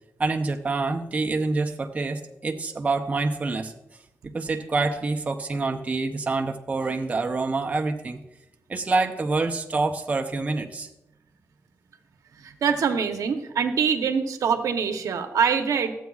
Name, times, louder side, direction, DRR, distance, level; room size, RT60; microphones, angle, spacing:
voice 1, 0.2-3.7 4.3-8.2 8.7-10.9, right 3 dB, 25° right, 3 dB, 0.6 m, -26 dB
voice 2, 12.4-16.0, right 6 dB, 80° right, 6 dB, 0.8 m, -24 dB
14.0 x 8.2 x 2.3 m, 0.91 s
wide cardioid pair, 145°, 6 cm